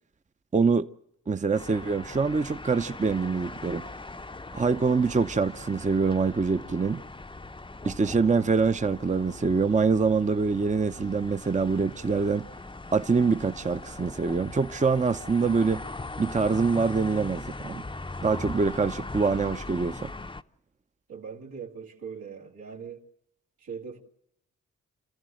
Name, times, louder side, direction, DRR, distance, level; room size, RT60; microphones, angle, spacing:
voice 1, 0.5-0.9 1.3-3.9 4.5-7.0 7.8-12.5 12.9-15.8 16.2-17.8 18.2-20.1, right 4 dB, 20° right, 0.7 m, -25 dB
sound 1, 1.5-20.4, left 2 dB, 15° left, 0.7 m, -40 dB
voice 2, 21.1-23.0 23.6-24.0, right 6 dB, 80° right, 2.7 m, -40 dB
28.0 x 14.0 x 7.7 m
supercardioid pair, 45°, 34 cm